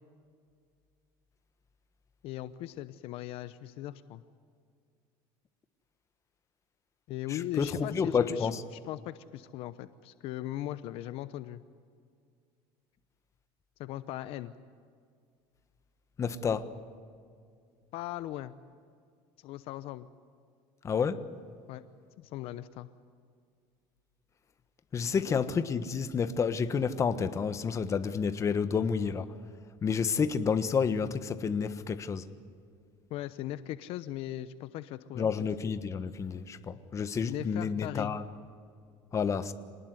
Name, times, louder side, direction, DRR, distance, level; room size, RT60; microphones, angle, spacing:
voice 1, 2.2-4.2 7.1-11.6 13.8-14.5 16.5-16.6 17.9-18.5 19.4-20.1 21.7-21.8 22.2-22.9 25.2-25.5 33.1-35.3 37.3-38.1, left 14 dB, 65° left, 13 dB, 0.9 m, -39 dB
voice 2, 7.3-8.6 16.2-16.7 20.8-21.3 24.9-29.3 29.8-32.3 35.1-38.2 39.1-39.5, left 6 dB, 30° left, 11 dB, 1.3 m, -30 dB
26.5 x 19.5 x 9.6 m, 2.2 s
cardioid pair, 135°, 11 cm